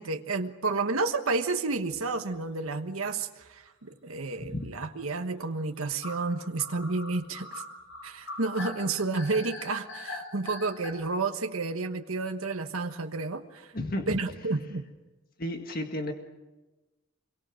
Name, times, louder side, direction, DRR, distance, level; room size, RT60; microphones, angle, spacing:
voice 1, 0.0-7.6 8.0-13.7 14.1-14.9, right 3 dB, 85° right, 6 dB, 1.3 m, -31 dB
sound 1, 1.7-2.0 2.3-2.4 2.6-2.7 3.7-3.9 6.0-10.9, left 2 dB, 65° left, 6.6 m, -41 dB
voice 2, 13.7-14.2 15.4-16.1, left 1 dB, 45° left, 4 dB, 1.8 m, -32 dB
25.0 x 23.5 x 6.4 m, 1.1 s
head